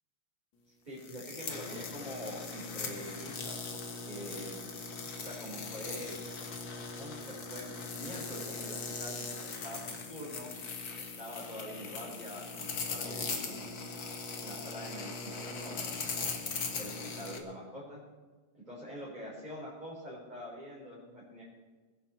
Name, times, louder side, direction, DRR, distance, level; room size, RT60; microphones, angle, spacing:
voice 1, 0.8-4.6 5.2-6.2 7.0-9.8 10.1-10.5 11.2-13.9 14.4-16.1 16.8-18.0 18.5-21.4, equal, 15° right, -7 dB, 4.4 m, -45 dB
sound 1, 1.0-17.4, left 4 dB, 45° left, 2.0 m, -40 dB
23.0 x 10.5 x 4.6 m, 1.4 s
omnidirectional pair, 3.5 m